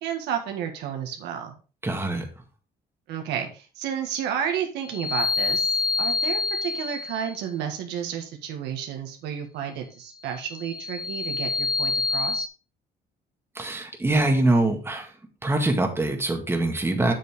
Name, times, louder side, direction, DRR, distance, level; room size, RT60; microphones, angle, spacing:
voice 1, 0.0-1.6 3.1-12.5, right 8 dB, 85° right, 4 dB, 1.7 m, -31 dB
voice 2, 1.8-2.3 13.6-15.1 15.4-17.1, right 2 dB, 15° right, 4 dB, 1.8 m, -23 dB
sound 1, 4.8-7.4 10.4-12.5, left 4 dB, 55° left, 1.1 m, -27 dB
7.5 x 7.1 x 3.5 m, 0.34 s
cardioid pair, 110°, 17 cm